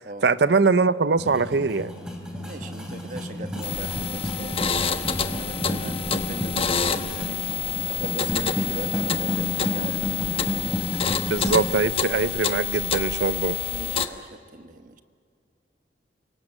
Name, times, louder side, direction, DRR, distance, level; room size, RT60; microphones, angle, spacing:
voice 1, 0.2-1.9 11.2-13.6, right 4 dB, 65° right, 0.6 m, -22 dB
sound 1, 1.2-11.7, equal, 5° right, 3.2 m, -31 dB
voice 2, 2.4-4.9 5.1-7.5 7.9-10.8 13.7-15.0, right 2 dB, 45° right, 1.2 m, -39 dB
sound 2, 3.6-14.1, left 7 dB, 30° left, 1.0 m, -28 dB
28.5 x 18.0 x 7.6 m
head